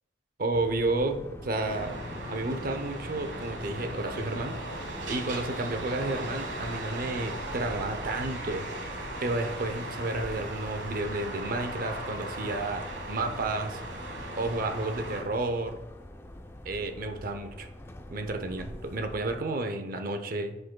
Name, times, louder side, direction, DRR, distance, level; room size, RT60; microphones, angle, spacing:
voice 1, 0.4-2.0 2.3-4.6 5.0-8.7 9.2-13.8 14.4-15.8 16.6-17.7 18.1-20.6, right 2 dB, 50° right, 6 dB, 0.6 m, -31 dB
sound 1, 0.5-19.4, left 1 dB, 15° left, 0.3 m, -46 dB
sound 2, 1.5-15.2, right 1 dB, 65° right, 1.3 m, -38 dB
9.6 x 5.3 x 2.2 m, 0.99 s
head